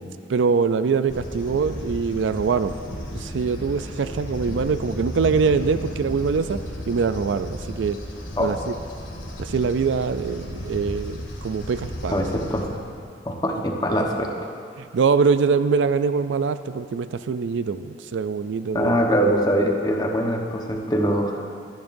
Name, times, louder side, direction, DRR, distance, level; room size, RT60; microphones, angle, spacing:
voice 1, 0.3-2.7 3.1-6.6 6.9-8.0 8.4-8.7 9.4-12.2 14.8-19.0, right 5 dB, 70° right, 11 dB, 0.4 m, -23 dB
sound 1, 1.1-12.6, left 1 dB, 80° left, 1.8 m, -34 dB
voice 2, 12.1-12.8 13.2-14.3 18.7-21.4, equal, 20° left, 1 dB, 1.1 m, -23 dB
21.0 x 10.5 x 2.6 m, 2.3 s
head